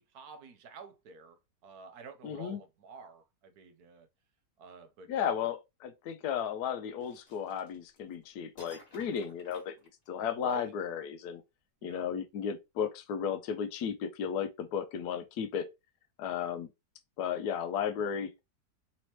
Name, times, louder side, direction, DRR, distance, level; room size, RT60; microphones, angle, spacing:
voice 1, 0.0-4.1 4.6-5.5 10.3-10.7 11.8-12.1, right 4 dB, 70° right, 1.2 m, -50 dB
voice 2, 2.2-2.6 5.1-9.7 10.1-11.4 11.8-15.7 16.2-16.7 17.2-18.4, left 8 dB, 75° left, 1.2 m, -34 dB
sound 1, 7.0-8.1 8.6-10.4, equal, 35° left, 1.7 m, -56 dB
4.0 x 2.9 x 3.1 m
omnidirectional pair, 1.8 m